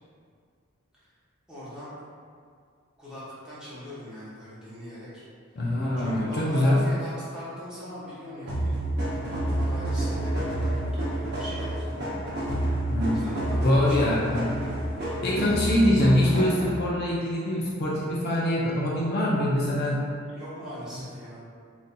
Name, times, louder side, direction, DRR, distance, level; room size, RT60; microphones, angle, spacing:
voice 1, 1.5-1.9 3.0-5.2 6.0-12.1 13.0-13.6 13.9-14.6 20.3-21.5, equal, 5° right, -12 dB, 1.0 m, -41 dB
voice 2, 5.6-6.8 12.9-13.3 13.6-14.5 15.2-20.0, left 1 dB, 50° left, -5 dB, 0.4 m, -24 dB
sound 1, 8.5-16.9, right 1 dB, 55° right, 0.7 m, -29 dB
3.9 x 2.6 x 2.2 m, 2.2 s
head